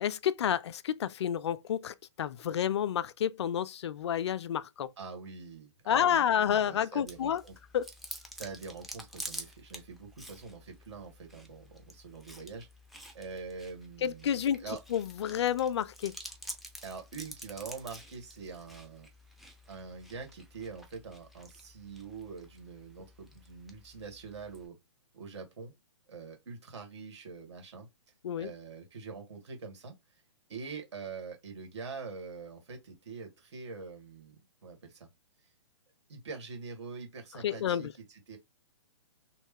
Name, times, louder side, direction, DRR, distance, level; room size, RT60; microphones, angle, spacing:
voice 1, 0.0-4.9 5.9-7.4 7.7-7.9 14.0-14.6 14.9-16.1 28.2-28.5 37.4-37.9, left 9 dB, 65° left, 0.4 m, -30 dB
voice 2, 5.0-7.5 8.3-12.7 13.1-14.8 16.8-19.1 19.7-24.8 25.1-25.7 26.1-27.9 28.4-30.2 30.5-34.4 34.6-35.1 36.1-38.4, right 4 dB, 65° right, 1.7 m, -44 dB
Chewing mastication, 7.1-24.7, equal, ahead, 0.4 m, -49 dB
3.1 x 2.1 x 3.6 m
hypercardioid pair, 130°, 15 cm